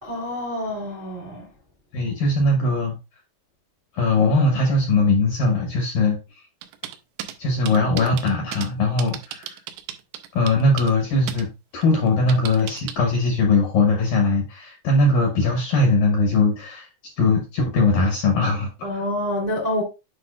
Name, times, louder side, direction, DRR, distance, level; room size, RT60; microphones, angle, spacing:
voice 1, 0.0-1.5 18.8-19.8, left 1 dB, 30° right, 1.0 m, -27 dB
voice 2, 1.9-2.9 3.9-6.2 7.4-9.6 10.3-11.5 11.7-19.0, left 2 dB, 70° left, 2.1 m, -20 dB
sound 1, 6.6-7.3 7.7-8.7 9.0-11.0 11.3-11.4 11.8-12.9, right 11 dB, 85° right, 2.8 m, -34 dB
8.4 x 5.2 x 2.4 m
omnidirectional pair, 5.4 m